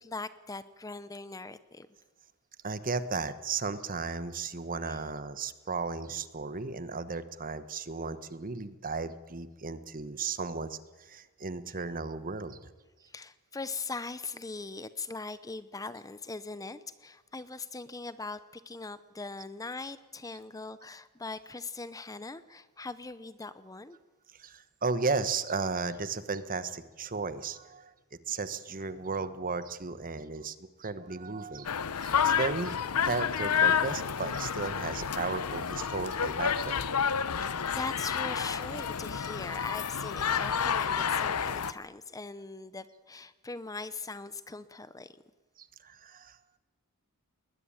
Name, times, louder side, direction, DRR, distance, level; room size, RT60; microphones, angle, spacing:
voice 1, 0.0-1.9 4.9-5.0 13.1-24.0 37.3-45.2, left 3 dB, 15° left, 14 dB, 0.7 m, -41 dB
voice 2, 2.6-12.7 24.3-27.9 28.3-31.7 32.0-36.8 45.6-46.6, right 4 dB, 40° right, 13 dB, 1.2 m, -35 dB
sound 1, 31.6-41.7, left 7 dB, 90° left, 0.9 m, -30 dB
20.5 x 20.0 x 8.9 m, 1.2 s
head